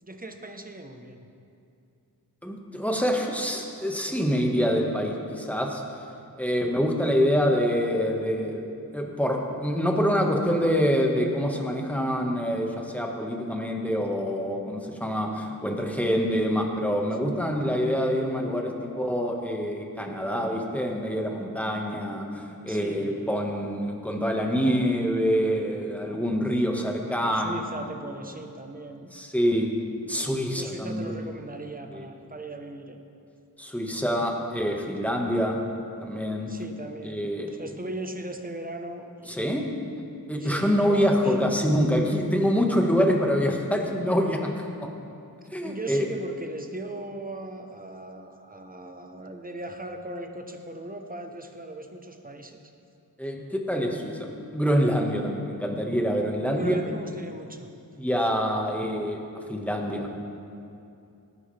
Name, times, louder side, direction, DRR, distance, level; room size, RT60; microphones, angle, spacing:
voice 1, 0.0-1.3 22.7-23.4 27.1-29.1 30.5-33.0 36.5-39.5 40.4-41.4 45.6-52.6 56.5-57.7, right 1 dB, 20° right, 4 dB, 1.2 m, -38 dB
voice 2, 2.4-5.8 6.4-8.7 8.9-27.7 29.1-29.7 30.1-31.1 31.9-32.1 33.6-35.6 36.0-36.5 37.0-37.6 39.3-39.6 40.3-44.5 44.8-44.9 45.5-46.1 53.2-54.3 54.5-56.7 58.0-59.2 59.5-60.1, equal, 5° left, 1 dB, 1.7 m, -26 dB
18.5 x 9.8 x 3.5 m, 2.6 s
wide cardioid pair, 45°, 38 cm